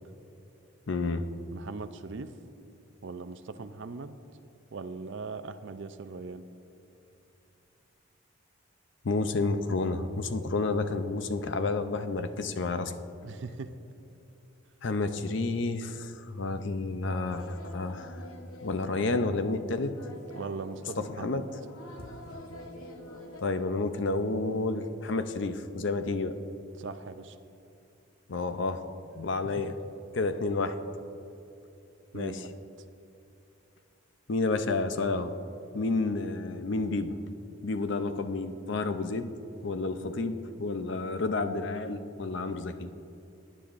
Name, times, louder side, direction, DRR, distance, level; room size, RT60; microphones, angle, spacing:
voice 1, 0.9-1.3 9.0-12.9 14.8-18.1 18.6-19.9 21.2-21.5 23.4-26.4 28.3-28.8 29.2-29.7 30.1-30.8 32.1-32.4 34.3-35.3 35.7-37.1 37.6-39.3 39.6-42.9, left 3 dB, 60° left, 9 dB, 0.5 m, -30 dB
voice 2, 1.5-2.3 3.0-4.2 4.7-6.5 13.2-13.7 20.4-21.5 26.8-27.4 29.4-29.6 32.1-32.5, right 4 dB, 60° right, 11 dB, 0.5 m, -40 dB
sound 1, 17.2-23.4, left 1 dB, 85° left, 1.0 m, -46 dB
18.5 x 9.9 x 2.5 m, 2.8 s
head